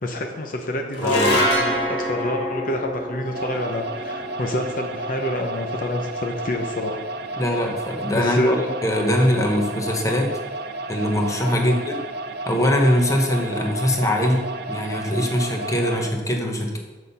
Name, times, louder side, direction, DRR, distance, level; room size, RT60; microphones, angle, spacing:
voice 1, 0.0-7.0 8.1-8.6 11.5-11.8, left 1 dB, 50° left, 2 dB, 0.7 m, -27 dB
sound 1, 0.9-7.4, equal, 85° left, 2.1 m, -27 dB
voice 2, 1.0-1.4 7.4-10.3 10.9-12.0 12.5-14.4 14.7-16.8, left 1 dB, 20° left, 2 dB, 1.0 m, -22 dB
sound 2, 3.3-16.1, right 2 dB, 60° right, 0.6 m, -32 dB
7.0 x 6.2 x 5.6 m, 1.3 s
head